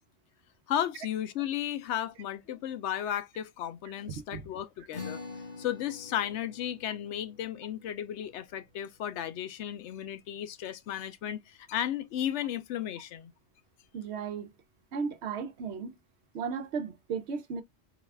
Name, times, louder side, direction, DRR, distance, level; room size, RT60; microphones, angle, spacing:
voice 1, 0.7-5.2 5.6-13.3, left 10 dB, 85° left, 0.9 m, -34 dB
voice 2, 4.1-4.4 13.9-14.5 14.9-15.9 16.3-17.6, right 6 dB, 75° right, 0.9 m, -35 dB
sound 1, 4.9-11.6, left 4 dB, 55° left, 1.7 m, -48 dB
4.7 x 2.3 x 3.3 m
omnidirectional pair, 1.2 m